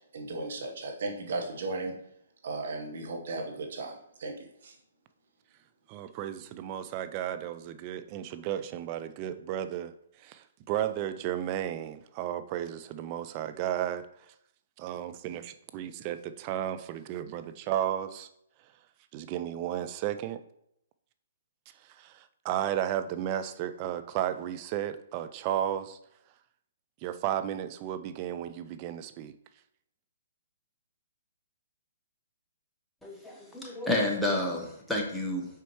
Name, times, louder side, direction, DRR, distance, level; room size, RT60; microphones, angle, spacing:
voice 1, 0.1-1.9 2.4-4.7, right 2 dB, 55° right, 2 dB, 1.2 m, -36 dB
voice 2, 5.9-9.9 10.2-14.1 14.8-18.3 19.1-20.4 22.0-26.0 27.0-29.3, right 11 dB, 35° right, 10 dB, 0.4 m, -33 dB
voice 3, 33.0-35.6, left 1 dB, 5° left, -2 dB, 1.1 m, -30 dB
6.8 x 4.4 x 3.1 m, 0.74 s
figure-of-eight pair, 130°, 0 cm